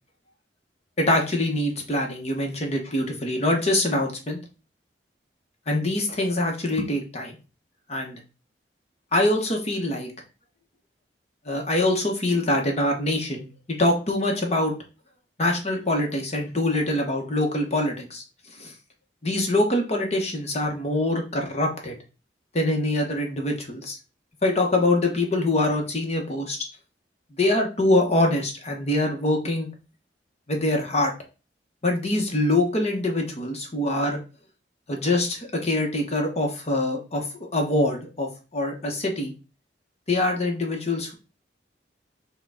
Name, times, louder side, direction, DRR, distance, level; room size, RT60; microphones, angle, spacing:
voice 1, 1.0-4.4 5.7-7.4 7.9-8.2 9.1-10.1 11.5-13.5 13.8-14.7 15.4-18.2 18.6-18.7 19.2-21.9 22.5-24.0 24.4-26.6 27.3-29.7 30.5-31.1 31.8-34.2 34.9-39.3 40.1-41.1, left 1 dB, 35° left, 2 dB, 1.0 m, -24 dB
6.2 x 2.3 x 3.5 m, 0.32 s
head